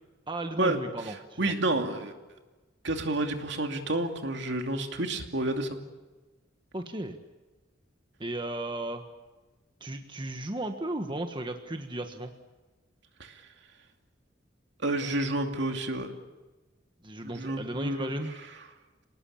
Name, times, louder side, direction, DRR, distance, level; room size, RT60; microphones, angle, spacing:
voice 1, 0.3-1.5 6.7-7.2 8.2-9.0 9.8-12.3 17.0-18.3, right 1 dB, 25° right, 6 dB, 1.4 m, -35 dB
voice 2, 1.4-2.1 2.8-5.8 13.2-13.4 14.8-16.1 17.2-18.1, right 2 dB, 65° right, 5 dB, 2.6 m, -29 dB
27.5 x 19.5 x 8.7 m, 1.2 s
head